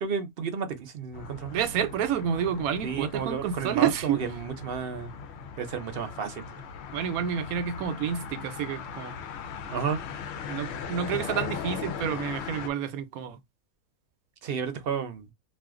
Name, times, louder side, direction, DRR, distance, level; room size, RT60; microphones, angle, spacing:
voice 1, 0.0-1.5 2.8-5.1 5.6-6.6 9.7-10.0 14.4-15.3, right 6 dB, 55° right, 0.7 m, -32 dB
sound 1, 1.1-12.7, left 6 dB, 65° left, 0.7 m, -39 dB
voice 2, 1.5-4.2 6.9-9.2 10.5-13.4, right 8 dB, 85° right, 1.1 m, -29 dB
2.5 x 2.4 x 3.6 m
omnidirectional pair, 1.5 m